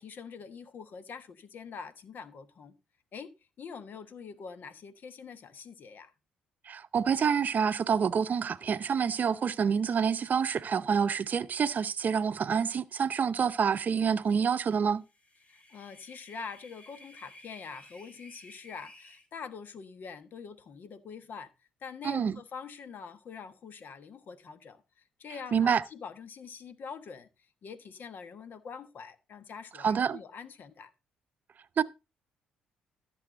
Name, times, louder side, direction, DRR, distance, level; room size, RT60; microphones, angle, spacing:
voice 1, 0.0-2.7 3.1-3.3 3.6-6.1 15.5-21.5 21.8-24.8 25.2-27.3 27.6-30.9, left 6 dB, 55° left, 1.4 m, -45 dB
voice 2, 6.7-15.0 22.0-22.4 25.5-25.8 29.8-30.2 31.8-31.9, right 6 dB, 50° right, 0.6 m, -27 dB
sound 1, 15.0-19.2, left 1 dB, 35° left, 3.6 m, -54 dB
14.0 x 7.0 x 3.8 m
hypercardioid pair, 50°, 4 cm